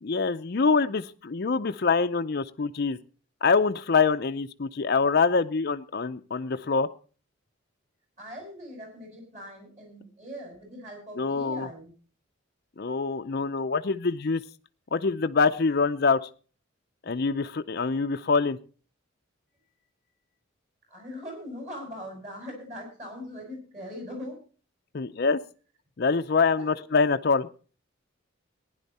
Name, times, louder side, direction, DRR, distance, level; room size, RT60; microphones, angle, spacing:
voice 1, 0.0-3.0 3.4-6.9 11.2-11.7 12.8-14.4 14.9-16.3 17.0-18.6 24.9-25.4 26.0-27.5, left 4 dB, 50° left, 8 dB, 0.5 m, -25 dB
voice 2, 8.2-11.9 20.9-24.4 26.5-26.7, equal, 35° right, 3 dB, 6.2 m, -41 dB
15.5 x 10.5 x 4.1 m, 0.39 s
head